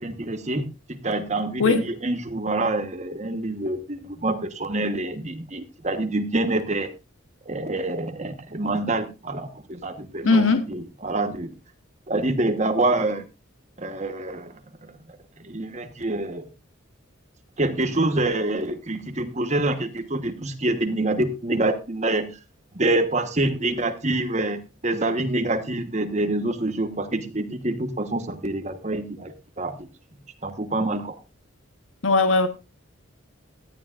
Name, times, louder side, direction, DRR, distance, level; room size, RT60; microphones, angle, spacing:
voice 1, 0.0-6.9 7.5-11.5 12.1-13.2 13.8-14.5 14.8-14.9 15.4-16.5 17.6-22.3 22.7-29.9 30.4-31.2, right 2 dB, 35° right, 1.3 m, -26 dB
voice 2, 10.2-10.6 32.0-32.5, left 3 dB, 75° left, 1.1 m, -18 dB
17.0 x 11.0 x 2.5 m
head